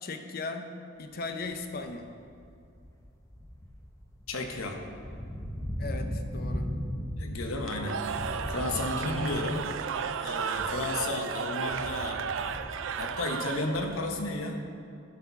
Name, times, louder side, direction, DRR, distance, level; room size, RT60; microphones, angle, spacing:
voice 1, 0.0-0.7 1.0-2.1 5.8-6.7, left 3 dB, 45° left, 6 dB, 0.5 m, -37 dB
sound 1, 1.4-1.7 2.2-11.0 11.3-14.2, equal, 15° left, 0.8 m, -38 dB
voice 2, 4.3-4.8 7.2-8.1 8.5-9.6 10.2-12.2 13.0-14.6, left 2 dB, 85° left, 3 dB, 1.0 m, -33 dB
Cheering / Crowd, 7.6-14.0, right 6 dB, 65° right, 0.3 m, -34 dB
11.0 x 4.3 x 5.8 m, 2.5 s
head